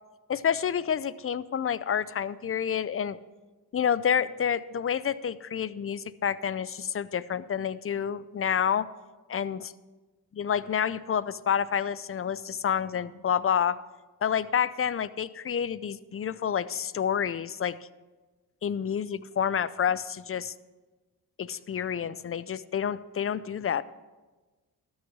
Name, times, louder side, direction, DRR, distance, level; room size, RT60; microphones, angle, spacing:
voice 1, 0.3-3.2 3.7-8.9 9.3-9.7 10.3-13.8 14.2-17.8 18.6-20.5 21.4-23.8, left 8 dB, 35° left, 17 dB, 0.5 m, -29 dB
13.0 x 6.4 x 6.2 m, 1.2 s
cardioid pair, 60°, 38 cm